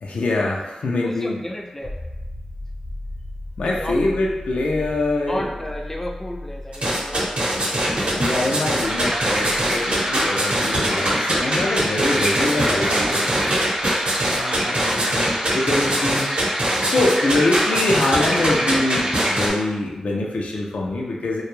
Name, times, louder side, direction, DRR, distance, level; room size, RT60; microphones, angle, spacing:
voice 1, 0.0-1.4 3.6-5.5 8.1-13.3 14.2-16.3 16.8-21.4, left 2 dB, 80° left, -2 dB, 0.4 m, -24 dB
voice 2, 1.0-2.0 3.6-4.0 5.3-8.1, left 1 dB, 15° left, 1 dB, 0.4 m, -33 dB
sound 1, 1.8-15.3 18.0-18.1, left 1 dB, 65° left, 0.8 m, -38 dB
sound 2, 6.7-19.5, right 1 dB, 60° right, 0.7 m, -23 dB
sound 3, 8.8-19.5, equal, 30° right, 0.7 m, -26 dB
2.2 x 2.1 x 3.0 m, 1.1 s
cardioid pair, 40°, 2 cm